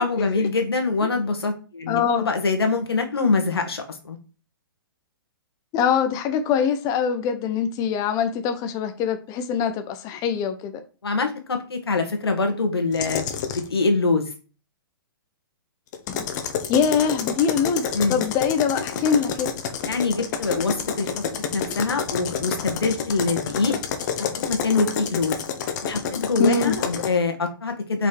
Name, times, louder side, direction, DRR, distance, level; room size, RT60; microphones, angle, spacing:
voice 1, 0.0-2.0 2.2-4.2 11.0-13.2 13.5-14.2 17.9-18.2 19.8-23.7 24.2-25.4 25.8-28.1, left 3 dB, 85° left, 5 dB, 1.7 m, -24 dB
voice 2, 1.9-2.3 5.7-10.8 16.1-16.2 16.7-19.5 26.4-26.8, left 7 dB, 30° left, 8 dB, 0.8 m, -23 dB
sound 1, 12.9-13.7 15.9-27.1, left 7 dB, 50° left, 1.2 m, -29 dB
5.2 x 4.6 x 4.5 m, 0.36 s
hypercardioid pair, 125°, 13 cm